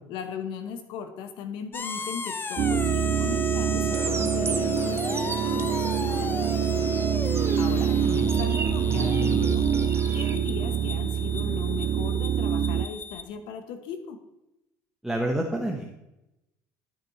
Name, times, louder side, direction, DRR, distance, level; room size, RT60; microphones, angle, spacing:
voice 1, 0.1-6.4 7.6-9.7 10.1-14.2, left 7 dB, 70° left, 8 dB, 1.1 m, -37 dB
sound 1, 1.7-13.2, left 4 dB, 25° left, 0.6 m, -34 dB
sound 2, 2.6-12.9, right 9 dB, 50° right, 0.4 m, -25 dB
sound 3, 3.9-10.4, right 5 dB, 30° right, 0.9 m, -36 dB
voice 2, 15.0-15.9, right 1 dB, 5° right, 0 dB, 1.1 m, -27 dB
12.0 x 6.5 x 3.1 m, 0.91 s
supercardioid pair, 80°, 8 cm